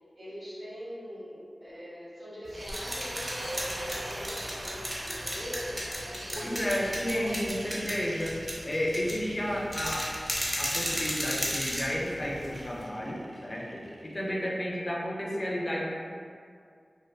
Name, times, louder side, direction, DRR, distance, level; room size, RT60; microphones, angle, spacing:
voice 1, 0.1-6.7 7.1-7.4 14.2-14.4, equal, 85° right, -10 dB, 0.9 m, -43 dB
sound 1, 2.5-12.8, equal, 15° right, 0.6 m, -34 dB
sound 2, 2.5-14.5, right 1 dB, 60° right, 0.3 m, -44 dB
voice 2, 6.3-8.4 8.6-10.1 10.6-15.8, equal, 40° left, -3 dB, 0.4 m, -32 dB
2.5 x 2.4 x 2.3 m, 2.3 s
wide cardioid pair, 80°, 0 cm